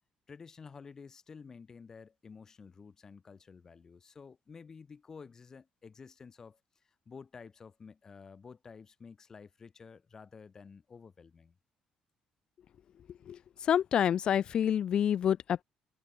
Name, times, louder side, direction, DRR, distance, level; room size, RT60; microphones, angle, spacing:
voice 1, 0.3-11.5, left 5 dB, 25° left, 3.2 m, -51 dB
voice 2, 13.3-15.6, left 9 dB, 40° left, 0.4 m, -28 dB
cardioid pair, 165°, 2 cm